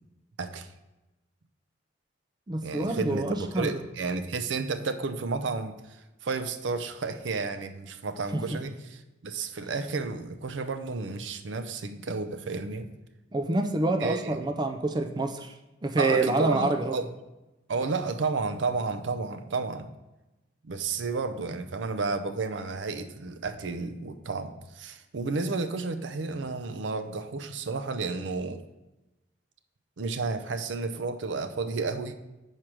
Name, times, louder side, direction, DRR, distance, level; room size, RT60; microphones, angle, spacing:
voice 1, 0.4-0.7 2.6-12.9 14.0-14.4 16.0-17.0 17.7-19.9 20.6-28.6 30.0-32.1, right 4 dB, 80° right, 9 dB, 0.5 m, -32 dB
voice 2, 2.5-3.8 8.3-8.6 13.3-15.6 15.8-17.0, right 2 dB, 25° right, 6 dB, 0.4 m, -27 dB
6.0 x 4.5 x 4.9 m, 1.0 s
head